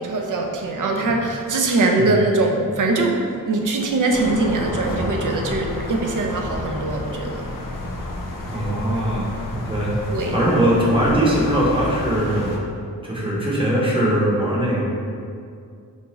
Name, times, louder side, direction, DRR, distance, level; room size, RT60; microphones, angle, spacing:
voice 1, 0.0-7.4 10.1-10.3, right 2 dB, 60° right, 2 dB, 0.5 m, -22 dB
sound 1, 4.1-12.6, left 1 dB, 65° left, 0.5 m, -30 dB
voice 2, 8.5-9.9 10.3-12.5 13.0-14.8, right 1 dB, 15° right, -5 dB, 0.8 m, -21 dB
4.0 x 2.3 x 3.0 m, 2.3 s
wide cardioid pair, 75°, 35 cm